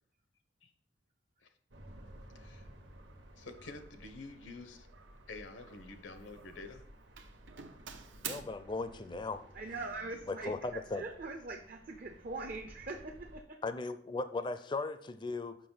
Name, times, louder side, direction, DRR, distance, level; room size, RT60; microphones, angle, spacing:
sound 1, 1.7-13.4, equal, 75° right, 1.2 m, -55 dB
Doorbell, 2.2-2.4 2.9-3.3 3.6-3.9 4.9-6.0 6.2-6.7 7.2-8.4, right 8 dB, 90° right, 0.7 m, -48 dB
voice 1, 2.3-2.7 3.4-4.9 5.3-6.9, left 3 dB, 85° left, 8 dB, 0.9 m, -48 dB
voice 2, 8.2-9.4 10.3-11.0 13.6-15.6, left 3 dB, 25° left, 11 dB, 0.4 m, -37 dB
voice 3, 9.5-13.6, right 3 dB, 50° right, 4 dB, 0.6 m, -42 dB
6.7 x 5.6 x 3.9 m, 0.64 s
head